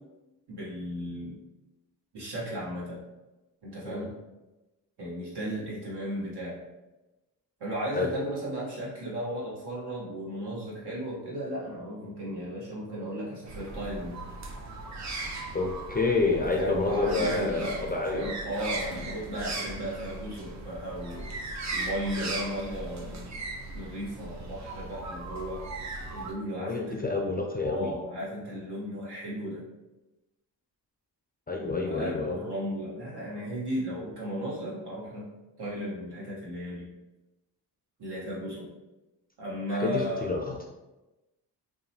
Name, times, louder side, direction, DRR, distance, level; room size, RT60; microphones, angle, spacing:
voice 1, 0.5-1.4 2.1-3.0 3.6-4.1 5.0-6.6 7.6-14.2 16.6-21.3 21.7-23.3 23.7-25.6 26.1-27.0 27.6-29.7 31.6-35.3 35.6-36.9 38.0-38.7 39.4-40.3, equal, 65° right, -6 dB, 1.3 m, -35 dB
sound 1, 13.5-26.3, right 2 dB, 40° right, 0.6 m, -38 dB
voice 2, 15.5-18.3 18.9-19.1 26.6-27.9 31.5-32.4 39.7-40.6, left 3 dB, 25° left, 0 dB, 0.3 m, -28 dB
2.7 x 2.3 x 2.7 m, 1.0 s
cardioid pair, 60°, 42 cm